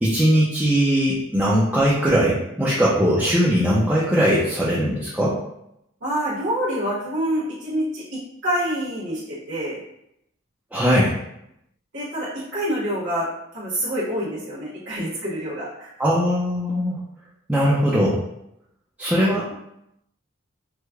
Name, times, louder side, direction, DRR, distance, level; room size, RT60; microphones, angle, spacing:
voice 1, 0.0-5.4 10.7-11.2 16.0-17.0 17.5-18.2 19.0-19.5, equal, 5° right, -8 dB, 0.4 m, -20 dB
voice 2, 6.0-9.8 11.9-13.3 13.5-15.9, equal, 65° right, -8 dB, 1.1 m, -27 dB
4.6 x 2.1 x 2.3 m, 0.80 s
head